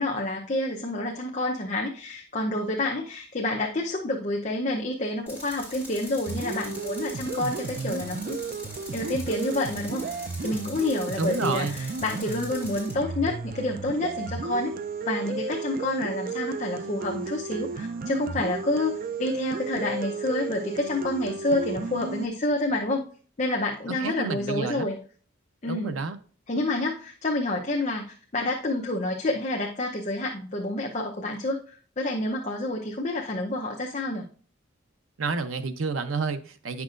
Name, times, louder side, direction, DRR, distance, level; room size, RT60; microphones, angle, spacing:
voice 1, 0.0-8.4 8.9-14.7 15.1-18.9 19.2-23.1 23.4-25.0 25.6-25.9 26.5-28.0 28.3-34.3, left 2 dB, 35° left, 0.7 m, -28 dB
Tools, 5.3-12.9, left 1 dB, 10° right, 3.7 m, -43 dB
sound 1, 6.3-22.3, right 4 dB, 45° right, 0.4 m, -34 dB
voice 2, 11.2-11.8 23.9-24.9 25.7-26.2 35.2-36.8, right 4 dB, 85° right, 0.7 m, -29 dB
9.7 x 5.9 x 2.5 m
head